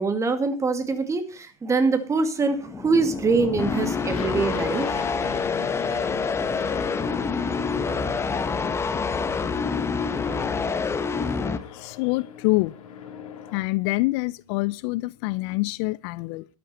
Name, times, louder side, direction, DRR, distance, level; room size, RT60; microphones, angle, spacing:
voice 1, 0.0-4.9, right 4 dB, 15° right, 2.1 m, -24 dB
sound 1, 2.6-11.6, left 5 dB, 15° left, 1.2 m, -27 dB
Aircraft, 4.1-13.6, left 9 dB, 70° left, 3.8 m, -40 dB
voice 2, 11.7-12.8 13.5-16.5, left 22 dB, 50° left, 0.6 m, -26 dB
12.5 x 12.0 x 4.3 m
hypercardioid pair, 115°, 18 cm